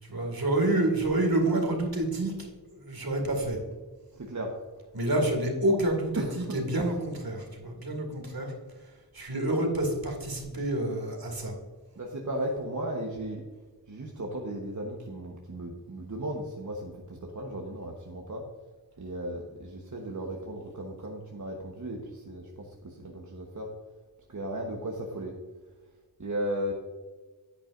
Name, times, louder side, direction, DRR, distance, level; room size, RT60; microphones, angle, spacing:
voice 1, 0.0-2.3 2.7-3.6 4.9-8.5 9.1-11.5, right 1 dB, 65° right, 2 dB, 2.3 m, -28 dB
voice 2, 4.1-4.5 5.1-5.2 6.1-7.0 12.0-13.4 13.9-18.4 19.0-23.7 24.3-25.3 26.2-26.7, right 1 dB, 50° right, 0 dB, 1.2 m, -36 dB
10.5 x 8.5 x 2.6 m, 1.4 s
wide cardioid pair, 65°, 39 cm